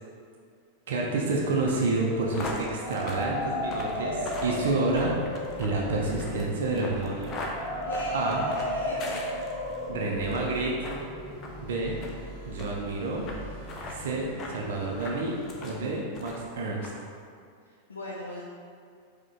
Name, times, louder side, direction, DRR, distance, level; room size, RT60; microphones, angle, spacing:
voice 1, 0.9-5.1 5.6-7.3 8.1-8.4 9.9-10.9 11.6-12.0 12.5-13.2 13.9-15.3 15.6-16.9, right 3 dB, 60° right, -2 dB, 0.5 m, -29 dB
sound 1, 1.6-9.8 10.2-10.5 10.8-11.0 11.4-11.6 12.0-12.2 12.6-12.7 13.3-13.4 13.6-14.0 14.4-14.6 15.0-15.8 16.1-16.5 16.8-16.9, left 2 dB, 30° left, 0.6 m, -39 dB
sound 2, 2.7-12.4, left 1 dB, 40° right, 1.0 m, -35 dB
sound 3, 2.9-15.8, equal, 20° right, 1.3 m, -44 dB
voice 2, 7.8-9.2 17.9-18.4, left 1 dB, 75° left, -5 dB, 0.4 m, -39 dB
4.8 x 2.2 x 3.7 m, 2.2 s
figure-of-eight pair, 90°, 0 cm